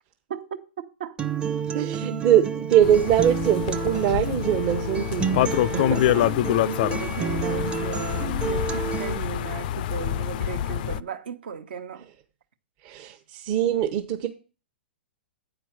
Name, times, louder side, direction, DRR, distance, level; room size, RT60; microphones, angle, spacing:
voice 1, 0.3-1.1 1.7-2.2 6.2-12.1, right 7 dB, 70° right, 1.1 m, -35 dB
Acoustic guitar, 1.2-9.2, right 6 dB, 15° right, 0.6 m, -30 dB
voice 2, 1.7-6.3 12.8-14.3, right 10 dB, 40° right, 0.9 m, -23 dB
sound 1, 2.8-11.0, left 12 dB, 55° left, 0.4 m, -26 dB
8.8 x 4.5 x 5.9 m
hypercardioid pair, 115°, 6 cm